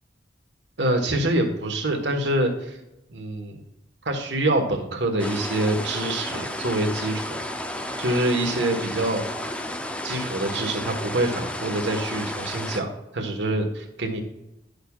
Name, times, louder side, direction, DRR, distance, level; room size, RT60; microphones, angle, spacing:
voice 1, 0.8-2.8 3.1-3.6 4.0-7.4 8.0-9.2 10.0-14.2, right 1 dB, 75° right, 3 dB, 1.4 m, -25 dB
sound 1, 5.2-12.8, left 1 dB, 5° left, 0.5 m, -32 dB
11.5 x 6.6 x 2.4 m, 0.89 s
head